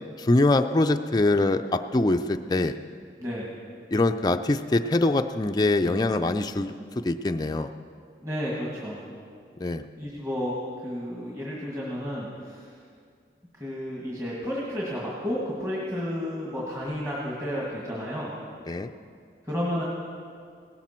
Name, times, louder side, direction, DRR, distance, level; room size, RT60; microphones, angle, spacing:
voice 1, 0.2-2.7 3.9-7.7 9.6-9.8 18.7-18.9, left 2 dB, 25° left, 7 dB, 0.4 m, -23 dB
voice 2, 8.2-9.0 10.0-12.7 13.5-18.3 19.4-19.8, equal, 20° right, -6 dB, 1.9 m, -32 dB
17.5 x 13.5 x 4.4 m, 2.2 s
head